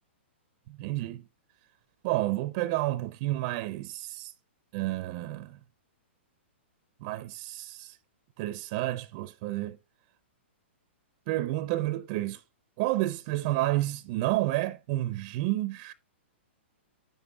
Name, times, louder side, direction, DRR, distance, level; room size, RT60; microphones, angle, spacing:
voice 1, 0.7-1.2 2.0-4.3 4.7-5.6 7.0-8.0 8.4-9.8 11.3-12.4 12.8-15.9, right 17 dB, 40° right, 0.5 m, -30 dB
9.1 x 7.0 x 3.4 m
hypercardioid pair, 145°, 7 cm